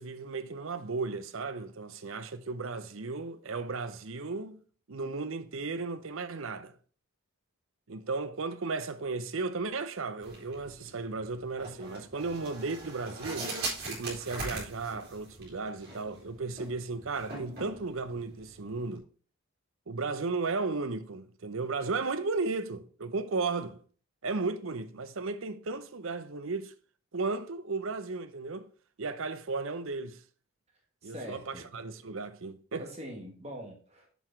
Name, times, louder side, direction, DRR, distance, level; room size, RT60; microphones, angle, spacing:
voice 1, 0.0-4.6 4.9-6.7 7.9-13.5 13.9-19.0 19.9-23.8 24.2-26.7 27.1-28.7 29.0-30.2 31.0-32.8, right 3 dB, 65° right, 0.7 m, -35 dB
sound 1, 10.2-19.0, right 2 dB, 45° right, 3.2 m, -41 dB
voice 2, 31.0-31.7 32.8-34.1, equal, 30° right, 1.8 m, -43 dB
7.1 x 6.0 x 4.4 m
head